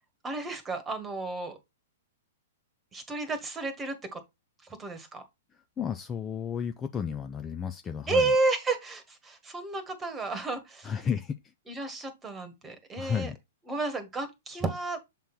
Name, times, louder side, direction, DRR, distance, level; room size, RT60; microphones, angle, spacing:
voice 1, 0.2-1.6 2.9-4.2 4.8-5.2 8.1-10.9 11.7-13.3 13.7-15.0, right 3 dB, 15° right, 1.6 m, -31 dB
voice 2, 5.8-8.3 10.8-11.4 13.0-13.4, left 7 dB, 20° left, 0.5 m, -32 dB
7.5 x 3.7 x 4.2 m
figure-of-eight pair, 105°, 0 cm